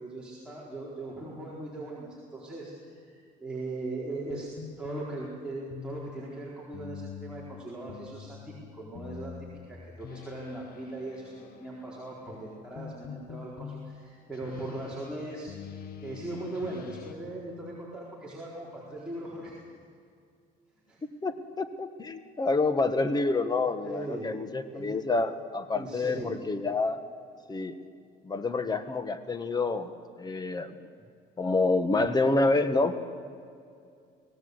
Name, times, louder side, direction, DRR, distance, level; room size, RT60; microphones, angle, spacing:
voice 1, 0.0-4.5 4.8-9.3 9.6-15.5 16.0-19.5 20.9-21.0 23.8-24.4 24.7-25.1 25.7-26.4, right 2 dB, 5° right, -6 dB, 4.5 m, -39 dB
sound 1, 4.3-17.1, left 7 dB, 60° left, 1.7 m, -45 dB
voice 2, 21.2-27.0 27.5-27.8 28.2-29.9 30.2-30.9 31.4-32.9, left 3 dB, 25° left, 10 dB, 1.5 m, -28 dB
25.5 x 17.5 x 8.1 m, 2.4 s
cardioid pair, 110°, 17 cm